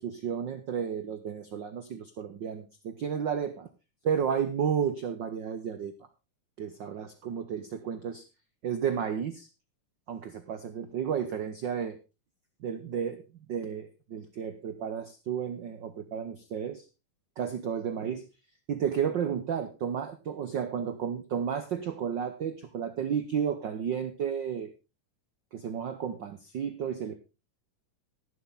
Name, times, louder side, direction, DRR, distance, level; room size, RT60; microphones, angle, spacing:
voice 1, 0.0-3.7 4.0-5.9 6.6-8.2 8.6-9.5 10.1-12.0 12.6-13.2 13.5-16.8 17.4-18.2 18.7-24.7 25.5-27.1, right 8 dB, 90° right, 9 dB, 1.0 m, -32 dB
13.5 x 11.5 x 3.6 m, 0.29 s
omnidirectional pair, 3.4 m